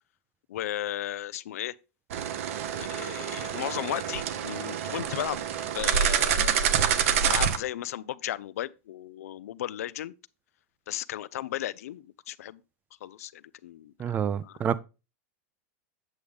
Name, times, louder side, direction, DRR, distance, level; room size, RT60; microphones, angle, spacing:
voice 1, 0.5-1.7 2.7-5.5 5.7-10.1 10.9-12.6 13.0-14.2 14.4-14.7, left 12 dB, 90° left, 0.5 m, -35 dB
sound 1, 2.1-7.6, right 8 dB, 70° right, 1.0 m, -27 dB
voice 2, 14.0-14.8, right 8 dB, 20° right, 0.4 m, -28 dB
8.3 x 6.4 x 3.5 m
supercardioid pair, 150°, 8 cm